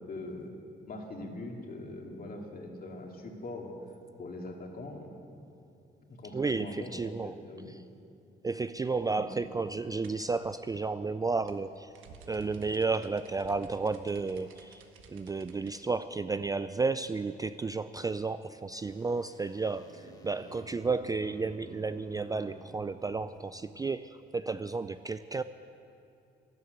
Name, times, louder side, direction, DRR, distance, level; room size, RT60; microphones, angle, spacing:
voice 1, 0.1-0.5 0.9-3.7 4.2-5.2 6.1-7.8 9.1-9.6, left 2 dB, 45° left, 1 dB, 2.4 m, -42 dB
voice 2, 6.3-7.4 7.7-7.8 8.4-11.9 12.3-14.8 15.1-25.4, right 4 dB, 20° right, 12 dB, 0.3 m, -32 dB
sound 1, 10.0-15.8, right 5 dB, 85° right, 1.3 m, -54 dB
sound 2, 18.7-22.6 23.4-23.5, left 2 dB, 20° left, 1.2 m, -56 dB
sound 3, 18.8-23.8, right 2 dB, 65° right, 2.3 m, -54 dB
12.5 x 11.0 x 8.2 m, 2.7 s
cardioid pair, 90°, 20 cm